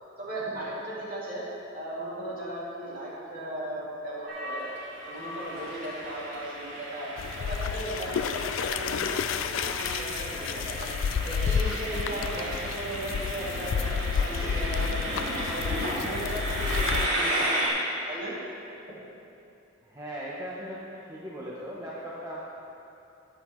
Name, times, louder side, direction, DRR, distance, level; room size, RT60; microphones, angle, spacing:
voice 1, 0.2-1.4 1.7-4.7 5.0-7.1 7.4-9.2 9.5-10.9 11.2-15.7 16.0-17.8 18.1-18.3 18.9-19.0, right 1 dB, 45° right, -7 dB, 2.5 m, -36 dB
Train, 4.3-17.7, right 1 dB, 75° right, 2.5 m, -34 dB
sound 1, 7.2-17.1, left 7 dB, 75° left, 0.3 m, -31 dB
voice 2, 19.8-22.4, equal, 15° right, -7 dB, 0.8 m, -38 dB
12.5 x 9.2 x 3.1 m, 2.7 s
head